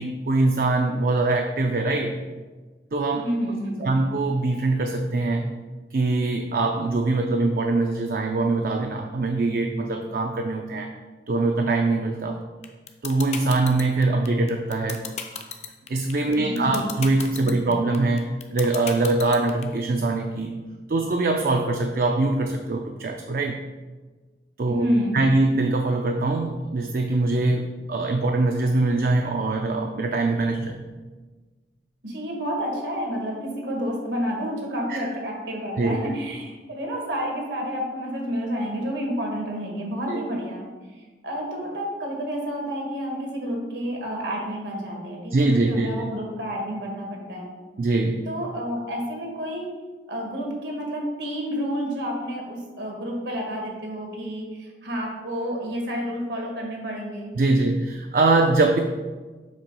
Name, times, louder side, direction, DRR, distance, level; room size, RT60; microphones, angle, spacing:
voice 1, 0.0-2.2 2.9-3.2 3.8-5.5 5.9-10.9 11.3-12.4 13.0-15.0 15.9-20.6 20.9-23.6 24.6-24.9 25.1-30.8 34.9-35.1 35.8-36.0 40.1-40.2 45.3-45.9 47.8-48.3 57.4-58.8, right 2 dB, 55° right, 3 dB, 0.4 m, -23 dB
voice 2, 3.2-4.1 16.4-16.9 17.4-17.8 24.7-25.3 32.0-40.7 41.2-47.5 48.3-49.7 50.1-57.4, equal, 85° right, 0 dB, 1.4 m, -30 dB
sound 1, 12.6-19.6, left 7 dB, 40° left, 0.5 m, -33 dB
7.3 x 2.9 x 5.4 m, 1.3 s
head